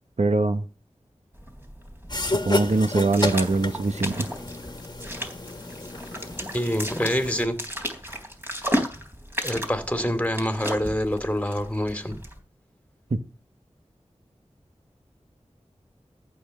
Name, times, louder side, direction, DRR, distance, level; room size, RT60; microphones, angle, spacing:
voice 1, 0.2-0.6 2.2-4.3 13.1-13.2, right 3 dB, 70° right, 1.0 m, -23 dB
sound 1, 1.3-12.4, equal, 20° right, 3.8 m, -34 dB
sound 2, 2.1-7.4, left 2 dB, 35° left, 1.7 m, -31 dB
voice 2, 6.5-7.6 9.4-12.1, equal, 10° left, 2.6 m, -26 dB
14.5 x 7.0 x 6.6 m
wide cardioid pair, 40°, 12 cm